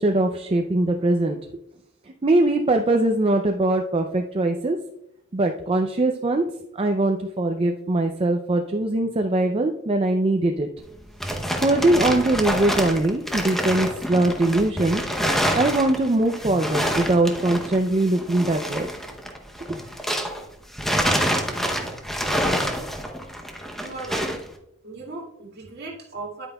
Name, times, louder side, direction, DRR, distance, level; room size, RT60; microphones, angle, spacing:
voice 1, 0.0-1.4 2.2-4.8 5.3-6.4 6.7-10.7 11.6-15.0 15.5-18.9, right 2 dB, 25° right, 4 dB, 0.4 m, -21 dB
sound 1, 10.8-20.4 20.7-24.5, equal, ahead, 0.7 m, -27 dB
voice 2, 23.7-24.3 24.8-26.5, right 3 dB, 50° right, -2 dB, 2.1 m, -37 dB
10.0 x 8.8 x 2.3 m, 0.81 s
head